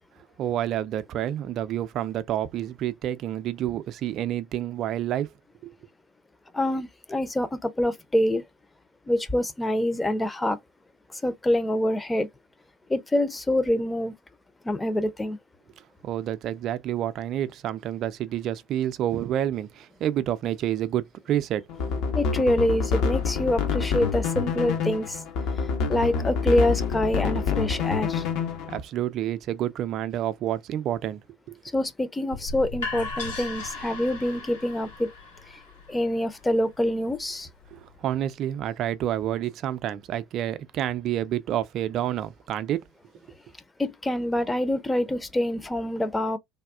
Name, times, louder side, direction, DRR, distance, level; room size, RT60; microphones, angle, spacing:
voice 1, 0.4-5.3 5.6-5.7 15.8-21.6 22.0-22.1 28.7-31.2 31.5-31.6 37.7-42.8, right 11 dB, 45° right, 0.4 m, -29 dB
voice 2, 6.5-8.4 9.1-10.6 11.2-12.3 12.9-14.1 14.6-15.4 22.1-25.2 25.9-28.2 31.7-35.1 35.9-37.5 43.8-46.4, left 1 dB, 10° left, 0.6 m, -25 dB
sound 1, 21.7-28.8, left 5 dB, 55° left, 0.8 m, -27 dB
sound 2, 32.3-38.1, left 4 dB, 75° left, 1.2 m, -38 dB
3.5 x 2.3 x 2.3 m
figure-of-eight pair, 70°, 0 cm